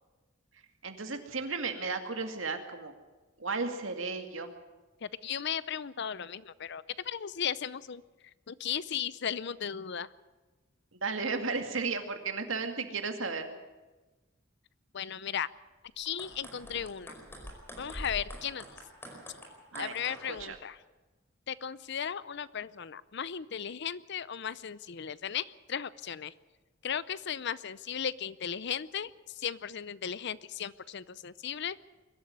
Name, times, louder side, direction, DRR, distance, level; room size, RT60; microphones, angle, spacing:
voice 1, 0.8-2.9 3.4-4.5 10.9-13.5 19.7-19.9 20.3-20.6, right 4 dB, 80° right, 5 dB, 2.3 m, -34 dB
voice 2, 5.0-8.0 8.5-10.1 14.9-15.5 16.0-17.1 17.8-18.6 19.8-20.8 21.5-26.3 26.8-31.9, left 8 dB, 60° left, 18 dB, 0.6 m, -36 dB
sound 1, 15.9-20.4, equal, 10° left, 4.9 m, -46 dB
22.5 x 12.5 x 9.6 m, 1.2 s
head